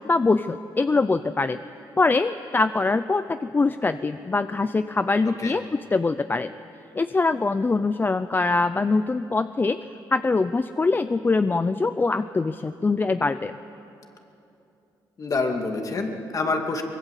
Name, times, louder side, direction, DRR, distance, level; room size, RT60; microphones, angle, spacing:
voice 1, 0.0-1.6 2.0-6.5 6.9-9.8 10.1-13.5, left 3 dB, 25° left, 12 dB, 0.5 m, -23 dB
voice 2, 15.2-16.8, left 3 dB, 45° left, 3 dB, 2.6 m, -26 dB
23.5 x 20.0 x 8.4 m, 2.9 s
cardioid pair, 95°, 8 cm